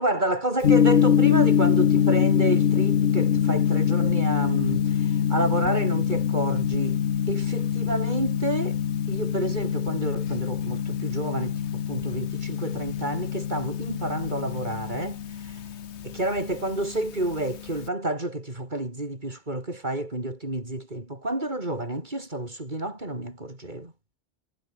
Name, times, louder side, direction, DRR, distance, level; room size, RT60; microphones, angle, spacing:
voice 1, 0.0-7.0 7.3-8.8 9.1-15.6 16.0-23.9, right 1 dB, 45° right, 5.0 m, -29 dB
Gong, 0.6-17.9, left 8 dB, 85° left, 1.2 m, -24 dB
omnidirectional pair, 1.1 m